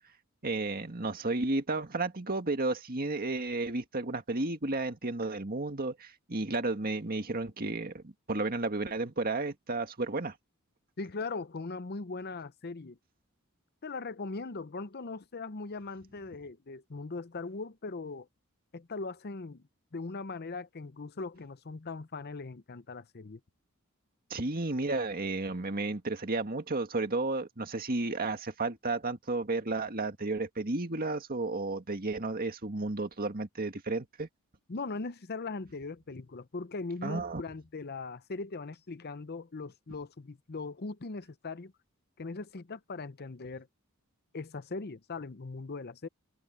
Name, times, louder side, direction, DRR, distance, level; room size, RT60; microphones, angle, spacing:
voice 1, 0.4-10.3 24.3-34.3 37.0-37.4, right 2 dB, 40° right, 2.0 m, -32 dB
voice 2, 11.0-13.0 13.8-18.3 18.7-19.6 19.9-23.4 34.7-41.7 42.2-43.7 44.3-46.1, left 3 dB, 45° left, 0.7 m, -40 dB
head